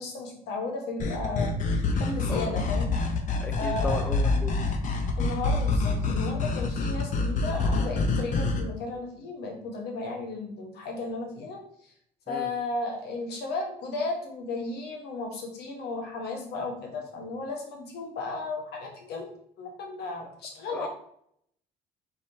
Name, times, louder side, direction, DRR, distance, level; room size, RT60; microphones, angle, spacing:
voice 1, 0.0-1.5 1.9-2.9 3.5-4.0 5.1-11.9 12.3-19.2 19.6-20.9, left 3 dB, 75° left, 1 dB, 1.2 m, -34 dB
sound 1, 1.0-8.6, left 3 dB, 50° left, 0.7 m, -26 dB
voice 2, 3.4-4.6 12.3-12.5 20.7-20.9, left 2 dB, 10° left, 5 dB, 0.4 m, -34 dB
4.1 x 3.5 x 2.8 m, 0.68 s
cardioid pair, 110°, 17 cm